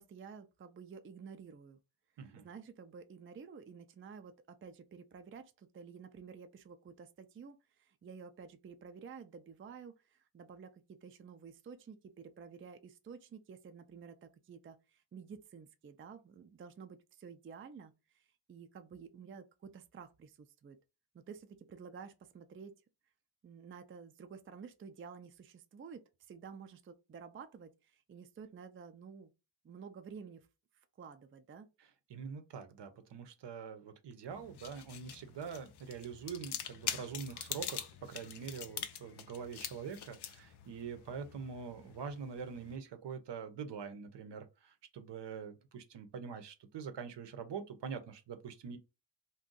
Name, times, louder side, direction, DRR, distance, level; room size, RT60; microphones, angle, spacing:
voice 1, 0.0-1.8 2.2-20.8 21.1-22.7 23.4-29.3 29.6-30.5 31.0-31.7, right 6 dB, 30° right, 0.4 m, -51 dB
voice 2, 32.1-48.8, right 6 dB, 70° right, 0.7 m, -44 dB
sound 1, 34.3-42.8, left 9 dB, 65° left, 0.5 m, -45 dB
2.5 x 2.3 x 3.7 m
cardioid pair, 75°, 44 cm